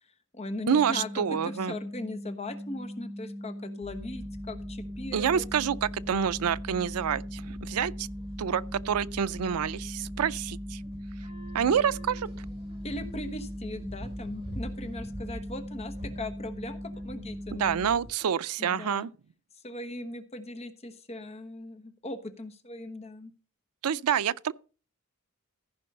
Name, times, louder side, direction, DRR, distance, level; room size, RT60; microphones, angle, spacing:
voice 1, 0.0-5.4 12.8-17.8 18.6-19.1 19.6-23.3, left 1 dB, 30° left, 1.0 m, -39 dB
sound 1, 0.7-17.9, left 1 dB, ahead, 0.5 m, -40 dB
voice 2, 0.7-1.7 5.1-8.1 8.4-10.8 11.5-12.3 17.5-19.1 23.8-24.5, right 8 dB, 85° right, 0.4 m, -27 dB
sound 2, 3.8-18.1, equal, 30° right, 5.7 m, -43 dB
14.5 x 5.4 x 5.4 m
head